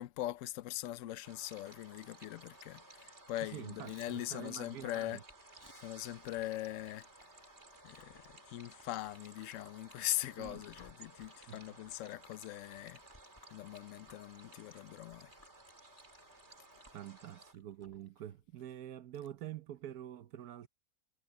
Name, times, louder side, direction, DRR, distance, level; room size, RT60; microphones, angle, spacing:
voice 1, 0.0-5.2 5.8-7.0 7.8-8.2 8.5-13.0 13.5-15.3, left 15 dB, 70° left, 0.9 m, -41 dB
sound 1, 1.2-17.5, right 2 dB, 45° right, 4.0 m, -57 dB
Chewing mastication, 3.4-18.1, left 1 dB, 15° left, 2.0 m, -64 dB
voice 2, 3.4-5.2 10.4-10.6 11.5-11.6 16.9-20.7, right 11 dB, 85° right, 1.3 m, -46 dB
omnidirectional pair, 1.6 m